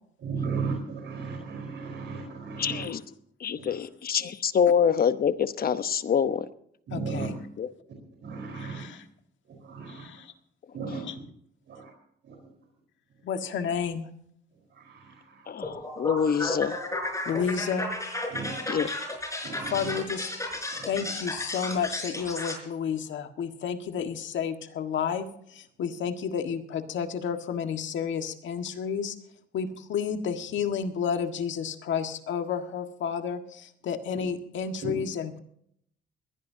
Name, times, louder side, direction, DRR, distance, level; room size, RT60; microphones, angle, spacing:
voice 1, 0.2-2.9 3.5-3.8 6.9-7.3 8.2-8.9 9.5-10.1 10.7-11.0 11.7-11.9 12.2-12.4 14.7-15.5 18.3-18.7 19.4-19.9 20.7-20.9 34.8-34.9, right 5 dB, 65° right, 1 dB, 4.3 m, -35 dB
voice 2, 2.6-3.0 3.4-6.5 7.6-7.7 15.5-16.8 18.7-18.9, left 7 dB, 50° left, 12 dB, 1.0 m, -25 dB
voice 3, 6.9-7.3 8.5-9.0 9.9-10.3 11.0-11.2 13.2-14.1 17.3-17.9 19.7-20.3 20.9-29.2 29.5-35.4, left 7 dB, 70° left, 6 dB, 1.7 m, -31 dB
sound 1, 15.6-22.6, left 1 dB, 15° left, 5.2 m, -34 dB
21.5 x 16.5 x 2.8 m, 0.69 s
cardioid pair, 90°, 20 cm